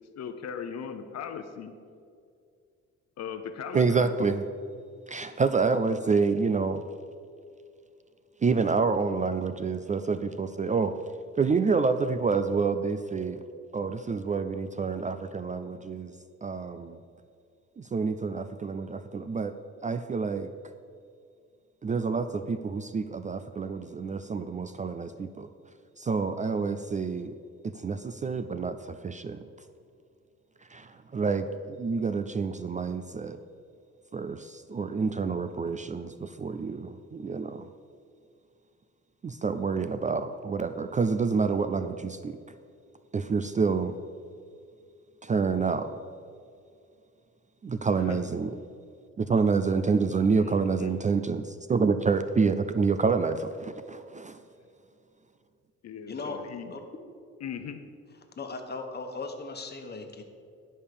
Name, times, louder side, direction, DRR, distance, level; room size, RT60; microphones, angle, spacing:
voice 1, 0.2-1.7 3.2-4.3 47.9-48.2 50.4-50.9 55.8-56.7 57.4-57.8, left 7 dB, 60° left, 8 dB, 0.8 m, -38 dB
voice 2, 3.7-4.5 5.1-6.8 8.4-10.9 11.4-13.4 13.7-16.1 16.4-17.0 17.8-19.5 19.8-20.5 21.8-25.5 26.0-27.3 27.6-29.4 30.7-33.4 34.1-37.7 39.2-42.4 43.1-44.0 45.2-45.9 47.6-48.5 49.2-54.4, right 4 dB, 25° right, 10 dB, 0.4 m, -28 dB
voice 3, 56.1-56.8 58.4-60.2, left 3 dB, 35° left, 4 dB, 1.4 m, -38 dB
11.0 x 5.4 x 6.7 m, 2.3 s
cardioid pair, 90°, 30 cm